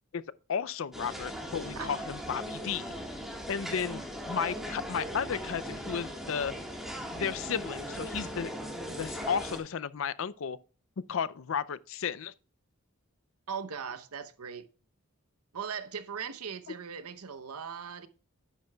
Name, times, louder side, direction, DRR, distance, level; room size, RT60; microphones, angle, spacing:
voice 1, 0.5-2.9 3.5-6.5 7.1-8.5 8.9-10.6 11.1-12.3, left 7 dB, 65° left, 0.4 m, -33 dB
sound 1, 0.9-9.6, equal, ahead, 1.5 m, -39 dB
voice 2, 13.5-14.7 15.5-18.1, right 6 dB, 90° right, 0.8 m, -39 dB
10.5 x 9.2 x 2.3 m
head